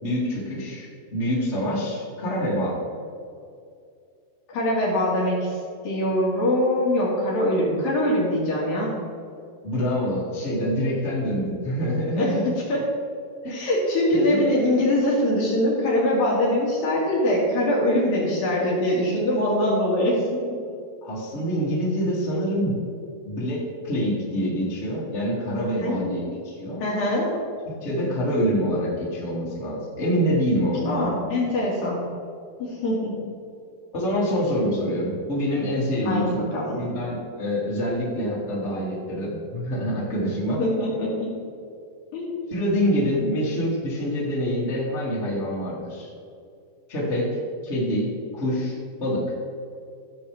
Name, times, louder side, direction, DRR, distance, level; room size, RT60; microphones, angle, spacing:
voice 1, 0.0-2.8 9.6-12.4 13.4-13.6 14.1-14.5 21.0-22.8 23.2-26.8 27.6-31.1 33.9-40.6 42.5-46.1 46.9-47.3 47.6-49.2, equal, 20° left, -7 dB, 2.6 m, -26 dB
voice 2, 4.5-5.6 5.8-8.9 12.2-12.4 12.7-12.8 13.5-20.6 25.8-26.3 26.8-27.3 30.9-32.0 32.6-33.2 36.0-36.8 40.6-41.3 42.1-42.5, left 1 dB, 60° left, -5 dB, 3.6 m, -23 dB
16.5 x 7.1 x 3.5 m, 2.4 s
omnidirectional pair, 4.8 m